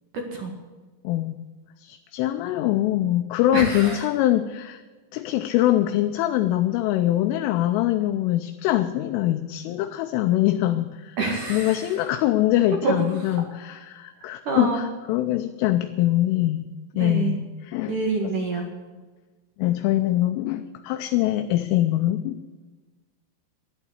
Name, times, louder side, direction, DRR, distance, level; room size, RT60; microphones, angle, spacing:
voice 1, 1.0-1.4 1.8-4.8 5.1-11.2 11.5-16.7 17.0-18.0 18.2-18.3 19.6-22.4, left 14 dB, 80° left, 8 dB, 3.1 m, -23 dB
voice 2, 3.5-4.0 11.2-12.0 12.8-12.9 13.2-13.4 14.2-14.8 16.9-17.4 17.9-18.7, right 4 dB, 55° right, 2 dB, 2.6 m, -27 dB
12.5 x 11.5 x 8.1 m, 1.3 s
omnidirectional pair, 5.9 m